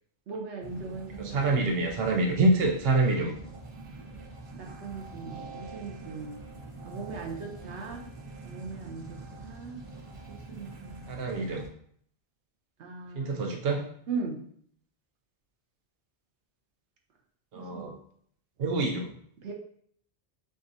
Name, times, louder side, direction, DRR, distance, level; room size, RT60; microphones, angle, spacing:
voice 1, 0.3-1.7 4.5-6.3 6.8-8.1 8.4-9.8 10.3-11.1 12.8-13.6 14.1-14.4 17.5-18.0 19.4-19.5, right 4 dB, 85° right, 1 dB, 1.1 m, -39 dB
sound 1, 0.6-11.7, right 2 dB, 35° right, 0.6 m, -45 dB
voice 2, 1.2-3.3 11.1-11.7 13.1-13.9 17.5-17.9 18.6-19.1, right 2 dB, 65° right, 1 dB, 0.9 m, -26 dB
7.2 x 2.4 x 2.6 m, 0.63 s
omnidirectional pair, 1.1 m